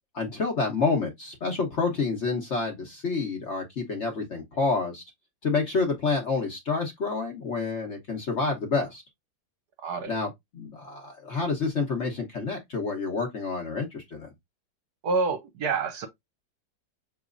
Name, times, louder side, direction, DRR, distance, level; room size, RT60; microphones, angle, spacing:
voice 1, 0.1-5.0 5.4-9.0 10.1-14.3, left 4 dB, 50° left, 1.0 m, -28 dB
voice 2, 9.8-10.1 15.0-16.1, right 4 dB, 65° right, 1.2 m, -27 dB
5.9 x 3.0 x 2.4 m
omnidirectional pair, 2.0 m